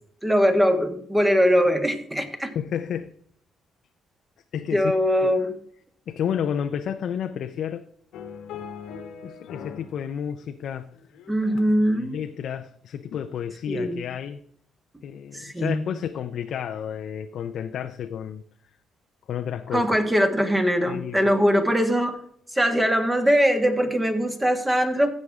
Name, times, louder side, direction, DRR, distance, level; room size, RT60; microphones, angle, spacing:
voice 1, 0.2-2.5 4.7-5.6 11.3-12.2 13.7-14.0 15.3-15.9 19.7-22.2 22.5-25.1, equal, 15° right, 1.9 m, -21 dB
voice 2, 2.5-3.1 4.5-4.9 5.2-5.3 6.1-7.9 9.2-10.9 11.9-14.4 15.0-18.4 19.3-19.9 20.9-21.2, left 8 dB, 70° left, 0.6 m, -31 dB
sound 1, 8.1-10.0 10.3-11.9 12.4-12.6, left 7 dB, 85° left, 1.3 m, -40 dB
16.0 x 6.5 x 3.6 m
cardioid pair, 90°, 0 cm